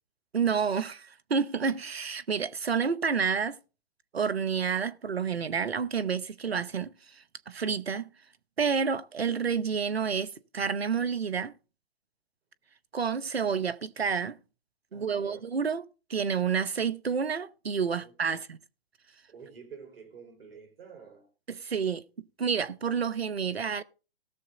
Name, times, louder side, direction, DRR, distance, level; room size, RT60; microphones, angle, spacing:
voice 1, 0.3-3.6 4.1-8.1 8.6-11.5 12.9-14.4 14.9-15.8 16.1-18.6 21.5-23.8, right 6 dB, 90° right, 0.8 m, -29 dB
voice 2, 14.9-15.4 18.0-18.4 19.3-21.3, right 6 dB, 70° right, 4.2 m, -49 dB
18.5 x 6.7 x 3.8 m
figure-of-eight pair, 120°, 30 cm